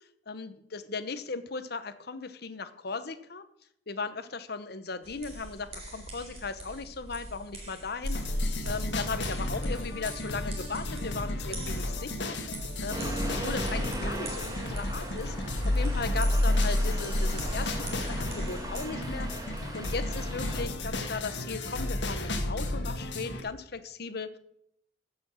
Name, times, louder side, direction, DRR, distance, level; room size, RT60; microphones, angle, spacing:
voice 1, 0.3-3.4 3.9-12.4 12.8-24.3, left 4 dB, 60° left, 11 dB, 1.0 m, -37 dB
sound 1, 5.0-18.9, right 1 dB, 35° right, 3.8 m, -44 dB
sound 2, 8.0-23.4, left 1 dB, 75° left, 1.8 m, -31 dB
Accelerating revving vroom, 12.9-20.6, right 1 dB, 20° right, 1.7 m, -39 dB
15.0 x 6.2 x 6.4 m, 0.74 s
head